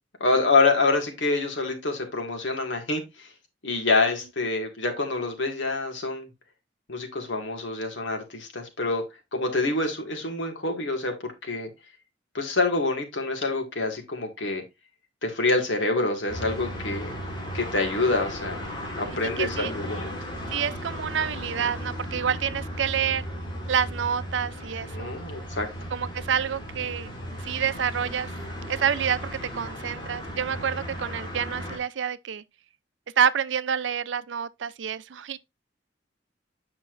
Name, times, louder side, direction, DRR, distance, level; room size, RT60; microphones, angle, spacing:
voice 1, 0.2-3.3 3.6-6.3 6.9-9.0 9.3-11.7 12.3-14.6 15.2-17.1 17.5-18.7 19.0-20.1 24.8-25.7, left 3 dB, 85° left, 2.0 m, -26 dB
sound 1, 16.3-31.8, equal, 25° left, 2.4 m, -36 dB
voice 2, 19.4-19.7 20.5-23.2 23.7-25.2 25.9-27.1 27.4-28.3 28.7-32.4 33.2-35.4, right 8 dB, 80° right, 0.5 m, -28 dB
7.7 x 5.9 x 2.5 m
head